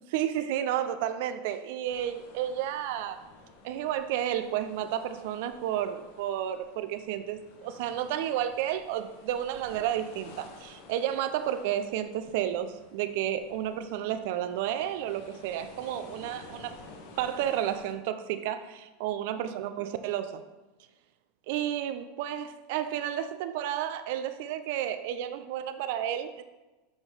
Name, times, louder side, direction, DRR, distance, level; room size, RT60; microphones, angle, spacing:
voice 1, 0.1-3.2 3.6-16.7 17.2-20.4 21.5-26.4, right 11 dB, 65° right, 10 dB, 0.7 m, -31 dB
sound 1, 1.9-17.9, left 3 dB, 65° left, 1.5 m, -52 dB
6.4 x 5.2 x 5.5 m, 1.1 s
hypercardioid pair, 110°, 0 cm